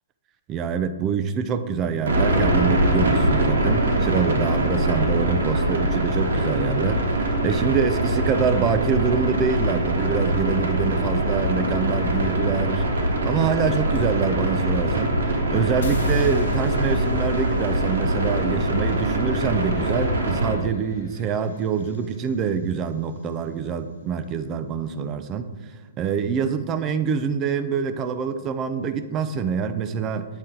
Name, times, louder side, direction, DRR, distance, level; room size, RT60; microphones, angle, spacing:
voice 1, 0.5-25.5 26.0-30.3, right 6 dB, 20° right, 10 dB, 0.3 m, -25 dB
sound 1, 2.1-20.5, right 1 dB, 85° right, 1.4 m, -23 dB
sound 2, 15.8-22.0, left 2 dB, 75° left, 0.8 m, -34 dB
7.8 x 4.1 x 3.8 m, 1.4 s
hypercardioid pair, 165°, 0 cm